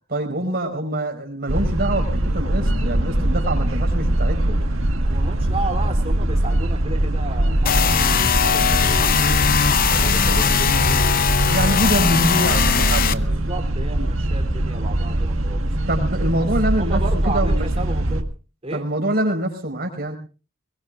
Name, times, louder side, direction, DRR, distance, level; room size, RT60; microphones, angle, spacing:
voice 1, 0.1-4.6 11.5-13.4 15.9-17.7 18.7-20.1, right 1 dB, 50° right, 3 dB, 4.7 m, -25 dB
sound 1, 1.5-18.2, right 1 dB, 85° right, 1.6 m, -22 dB
sound 2, 2.5-9.1, left 2 dB, 10° left, 4.8 m, -42 dB
voice 2, 5.0-9.4 9.9-11.2 13.2-15.6 16.8-18.3 18.6-18.8, right 2 dB, 30° right, 4 dB, 3.2 m, -33 dB
sound 3, 7.7-13.1, left 7 dB, 45° left, 0.8 m, -19 dB
21.5 x 21.0 x 2.5 m, 0.34 s
head